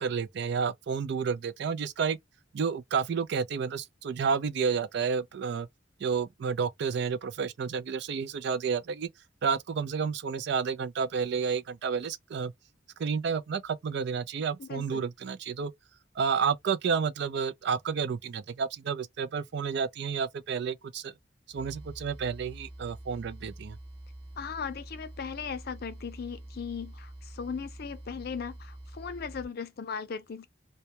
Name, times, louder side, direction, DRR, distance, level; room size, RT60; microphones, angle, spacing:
voice 1, 0.0-2.2 2.5-5.7 6.0-9.1 9.4-12.5 13.0-15.7 16.2-21.1 21.5-23.8, right 6 dB, 65° right, 0.4 m, -30 dB
voice 2, 14.6-15.0 24.4-30.5, left 6 dB, 55° left, 0.5 m, -38 dB
sound 1, 21.5-29.5, right 1 dB, 25° right, 0.8 m, -46 dB
2.2 x 2.1 x 2.7 m
head